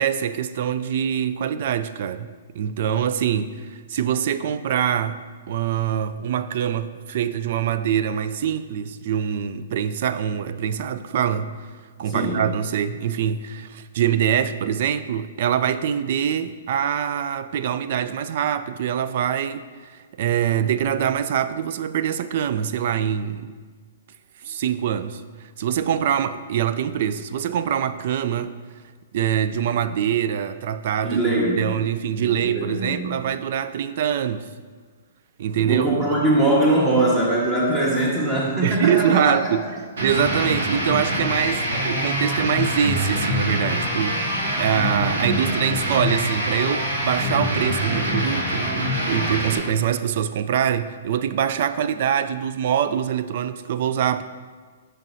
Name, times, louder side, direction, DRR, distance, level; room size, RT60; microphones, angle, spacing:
voice 1, 0.0-2.3 2.5-5.2 5.5-11.5 12.0-23.5 24.4-28.5 29.1-31.3 31.6-34.5 35.4-35.9 38.6-39.7 40.0-54.2, right 9 dB, 55° right, 13 dB, 0.3 m, -24 dB
voice 2, 31.0-31.6 32.1-33.2 35.6-39.5, right 1 dB, 20° right, -4 dB, 1.4 m, -22 dB
sound 1, 40.0-49.6, equal, 75° right, 1.9 m, -24 dB
7.2 x 6.3 x 2.7 m, 1.5 s
hypercardioid pair, 145°, 0 cm